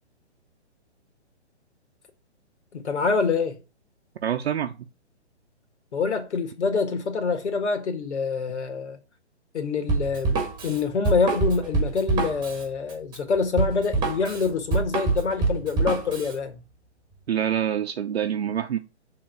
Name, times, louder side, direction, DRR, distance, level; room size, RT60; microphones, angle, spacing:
voice 1, 2.7-3.6 5.9-9.0 9.5-16.6, left 5 dB, 70° left, 1.9 m, -26 dB
voice 2, 4.2-4.8 17.3-18.8, right 9 dB, 60° right, 0.8 m, -26 dB
Drum kit, 9.9-16.3, right 4 dB, 10° right, 1.5 m, -26 dB
6.4 x 3.8 x 5.9 m
hypercardioid pair, 155°, 35 cm